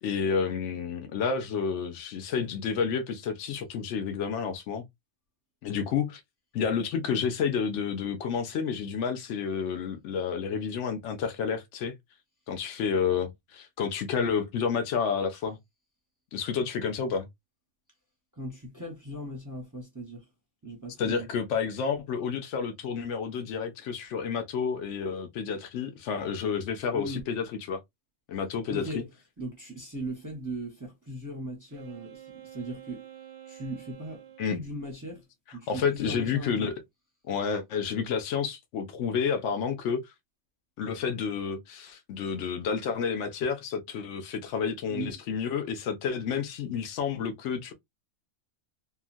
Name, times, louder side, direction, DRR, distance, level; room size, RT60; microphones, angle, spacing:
voice 1, 0.0-4.8 5.6-6.2 6.5-11.9 12.5-15.6 16.3-17.3 21.0-27.8 28.3-29.0 34.4-34.6 35.7-36.7 37.3-40.1 40.8-47.7, left 6 dB, 80° left, 0.9 m, -30 dB
voice 2, 18.3-20.3 20.6-21.3 26.9-27.2 28.7-29.1 29.4-33.0 33.5-35.2 35.5-36.7 44.9-45.1, right 1 dB, 20° right, 0.6 m, -38 dB
Wind instrument woodwind instrument, 31.7-34.6, right 11 dB, 80° right, 0.9 m, -48 dB
2.8 x 2.4 x 2.4 m
omnidirectional pair, 1.2 m